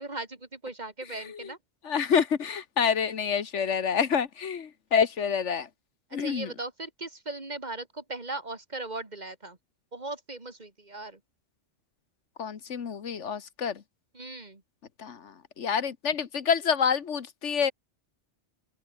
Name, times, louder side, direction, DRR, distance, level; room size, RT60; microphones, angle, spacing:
voice 1, 0.0-1.6 6.2-9.6 9.9-11.2 14.1-14.6, right 2 dB, 40° right, 2.4 m, -38 dB
voice 2, 1.1-1.5 1.8-5.7 6.1-6.5 12.4-13.8 15.0-17.7, left 7 dB, 80° left, 1.6 m, -28 dB
open air
omnidirectional pair, 1.2 m